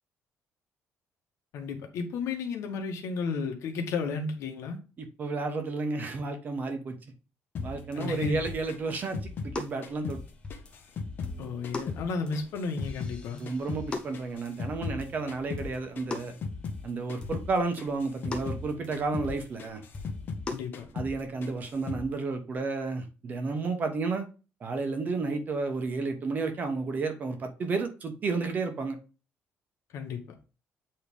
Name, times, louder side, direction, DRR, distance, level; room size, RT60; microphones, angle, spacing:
voice 1, 1.5-4.8 7.9-8.4 11.4-13.4 20.5-20.9 29.9-30.2, left 4 dB, 70° left, 4 dB, 1.5 m, -33 dB
voice 2, 5.0-7.0 7.6-9.2 9.4-10.2 13.4-16.3 16.8-19.8 20.9-24.3 24.6-29.0, right 3 dB, 35° right, 6 dB, 1.1 m, -32 dB
sound 1, 7.5-10.2 10.5-13.2 13.5-16.8 17.1-17.5 17.8-20.5 20.7-21.2 21.4-22.1, left 4 dB, 45° left, 1.0 m, -38 dB
sound 2, 7.6-7.7 7.9-8.1 8.5-9.2 9.6-10.9 11.2-12.5 12.8-15.2 15.6-15.8 16.1-16.4 16.7-16.8 17.2-17.9 18.3-19.6 19.9-20.7, left 3 dB, 20° left, 1.0 m, -40 dB
8.3 x 3.3 x 3.5 m, 0.32 s
cardioid pair, 165°, 5 cm